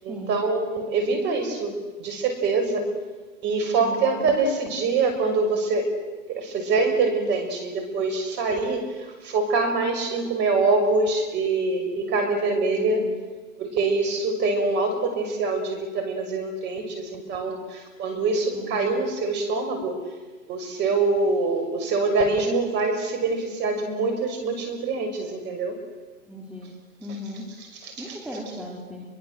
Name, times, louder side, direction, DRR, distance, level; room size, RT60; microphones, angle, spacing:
voice 1, 0.0-2.9 3.4-5.9 6.3-13.1 13.6-20.0 20.5-25.8 27.1-27.2 27.6-28.2, right 3 dB, 30° right, 5 dB, 6.3 m, -25 dB
voice 2, 3.8-4.2 12.8-13.1 18.5-18.9 26.3-26.7 27.0-27.5 28.0-29.0, left 1 dB, 5° right, -2 dB, 4.1 m, -37 dB
30.0 x 23.5 x 7.8 m, 1.3 s
hypercardioid pair, 130°, 39 cm